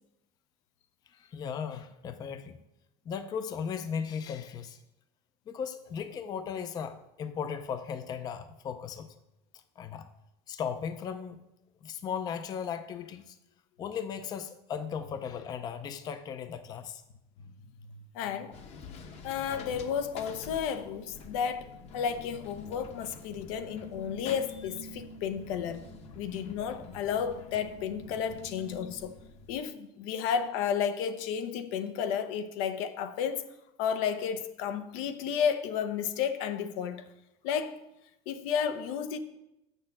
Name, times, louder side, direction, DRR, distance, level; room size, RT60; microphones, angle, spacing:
voice 1, 1.1-2.6 3.1-4.8 5.5-9.1 9.8-10.1 10.5-11.4 11.8-13.4 13.8-17.0, left 7 dB, 25° left, 0.4 m, -37 dB
voice 2, 17.9-18.6 19.2-21.7 21.9-25.8 26.2-29.2 29.5-33.5 33.8-37.0 37.4-37.8 38.3-39.2, left 7 dB, 80° left, 0.8 m, -32 dB
sound 1, 18.5-29.6, left 3 dB, 40° left, 0.9 m, -47 dB
6.6 x 6.5 x 7.3 m
cardioid pair, 165°, 17 cm